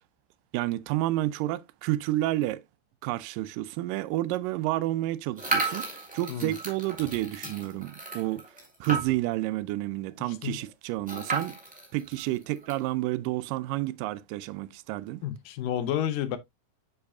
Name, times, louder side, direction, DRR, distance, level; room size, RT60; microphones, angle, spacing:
voice 1, 0.5-2.6 3.0-5.9 6.1-8.4 8.8-11.6 11.9-15.2, right 16 dB, 85° right, 2.2 m, -30 dB
sound 1, 5.4-9.4 9.8-9.9 10.1-10.2 11.1-12.8, right 3 dB, 5° right, 2.2 m, -34 dB
voice 2, 15.2-16.4, left 10 dB, 85° left, 2.5 m, -30 dB
7.3 x 7.0 x 2.4 m
omnidirectional pair, 3.8 m